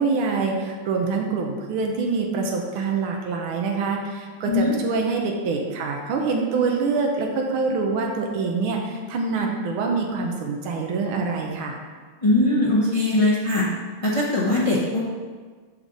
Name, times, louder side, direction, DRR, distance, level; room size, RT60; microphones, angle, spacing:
voice 1, 0.0-11.8, right 4 dB, 75° right, 1 dB, 1.7 m, -25 dB
voice 2, 4.4-4.8 12.2-13.7 14.0-15.0, left 2 dB, 60° left, -5 dB, 0.3 m, -20 dB
6.6 x 6.3 x 3.9 m, 1.5 s
omnidirectional pair, 2.4 m